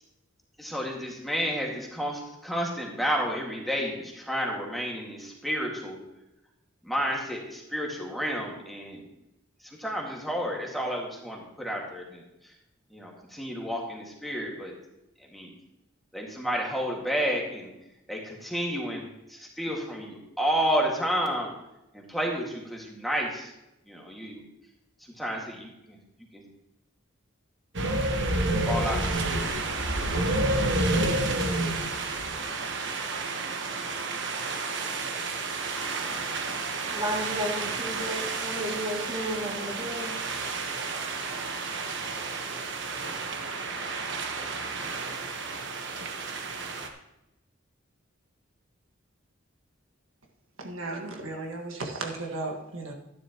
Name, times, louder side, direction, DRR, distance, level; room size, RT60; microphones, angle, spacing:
voice 1, 0.6-6.0 6.8-9.0 9.8-12.2 12.9-14.7 15.3-15.5 16.1-17.7 18.1-19.0 19.3-21.5 21.9-23.5 23.9-24.4 25.2-26.0 26.3-26.4 27.7-28.0 28.7-29.5, equal, ahead, -2 dB, 2.0 m, -31 dB
sound 1, 27.7-46.9, right 2 dB, 65° right, 1.3 m, -30 dB
voice 2, 31.0-31.3 36.9-40.2, equal, 25° right, -1 dB, 2.5 m, -33 dB
voice 3, 50.6-52.9, right 2 dB, 85° right, 1 dB, 1.7 m, -35 dB
12.5 x 10.5 x 3.0 m, 0.91 s
head